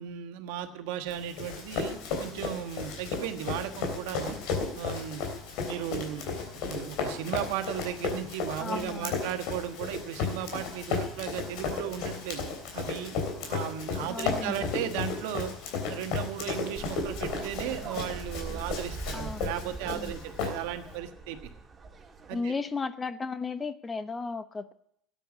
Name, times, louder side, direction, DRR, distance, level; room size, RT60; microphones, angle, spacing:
voice 1, 0.0-4.4 4.7-5.2 5.7-6.2 6.5-13.2 13.5-15.5 15.9-21.4 22.3-22.5, right 10 dB, 80° right, 7 dB, 1.4 m, -36 dB
Run, 1.1-20.9, left 5 dB, 70° left, 3.4 m, -34 dB
voice 2, 8.6-9.1 14.1-14.6 19.1-19.5 19.9-20.1 22.3-24.7, left 4 dB, 25° left, 13 dB, 0.8 m, -34 dB
sound 1, 16.7-22.4, right 3 dB, 25° right, 3.1 m, -42 dB
13.0 x 9.1 x 8.2 m, 0.72 s
hypercardioid pair, 80°, 0 cm